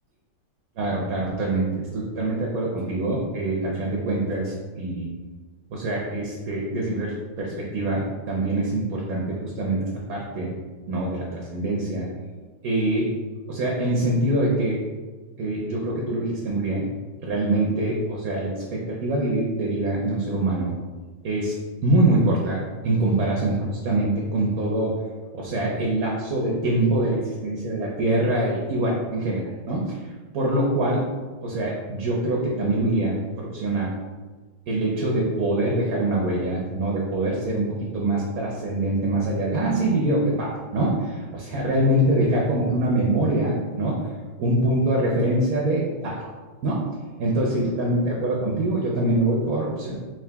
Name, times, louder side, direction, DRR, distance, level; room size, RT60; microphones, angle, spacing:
voice 1, 0.8-5.1 5.7-10.5 10.9-12.1 12.6-13.1 13.5-14.8 15.4-16.8 17.2-20.7 21.2-21.5 21.8-22.6 22.8-25.0 25.3-29.4 29.7-30.0 30.3-31.0 31.4-33.9 34.7-44.0 44.4-46.2 46.6-46.8 47.2-49.9, right 1 dB, 60° right, -2 dB, 1.0 m, -24 dB
3.7 x 3.1 x 3.4 m, 1.3 s
omnidirectional pair, 2.0 m